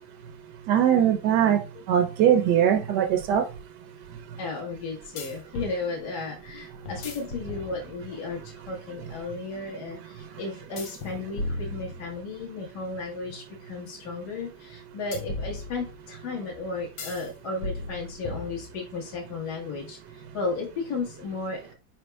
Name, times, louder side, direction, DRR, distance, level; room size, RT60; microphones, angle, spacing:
voice 1, 0.7-1.6 1.9-3.4, right 9 dB, 70° right, 5 dB, 1.2 m, -21 dB
sound 1, 2.7-2.8 5.2-5.8 6.9-8.2 10.8-12.5 15.1-16.1 17.0-17.3 17.6-19.0, left 2 dB, 85° left, 1.6 m, -36 dB
voice 2, 4.4-21.8, left 3 dB, 60° left, -1 dB, 1.8 m, -34 dB
4.9 x 4.3 x 2.2 m, 0.30 s
omnidirectional pair, 2.0 m